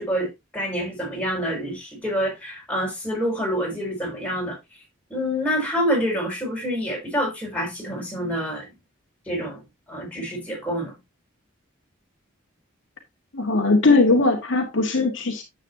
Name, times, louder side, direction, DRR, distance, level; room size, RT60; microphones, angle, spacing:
voice 1, 0.0-4.6 5.1-8.7 9.3-9.6 9.9-10.9, equal, 5° left, 6.1 m, -27 dB
voice 2, 13.3-15.4, left 3 dB, 65° left, 1.8 m, -19 dB
10.0 x 8.2 x 2.8 m
head